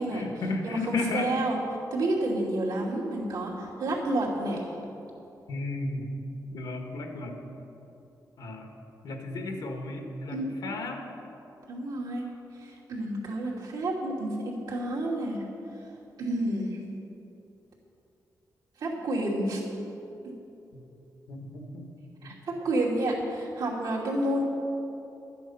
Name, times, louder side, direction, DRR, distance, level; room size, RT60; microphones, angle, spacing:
voice 1, 0.0-1.4 5.5-6.1 6.5-7.3 8.4-8.8 9.0-11.1 20.7-20.8 21.3-21.9 22.2-22.3, left 3 dB, 75° left, 4 dB, 1.5 m, -34 dB
voice 2, 0.6-1.6 1.9-4.6 10.3-10.8 11.7-12.3 12.6-15.4 16.2-16.8 18.8-19.6 20.2-20.3 22.2-24.4, right 1 dB, 80° right, -4 dB, 2.7 m, -30 dB
12.0 x 9.3 x 5.8 m, 2.9 s
wide cardioid pair, 125°, 7 cm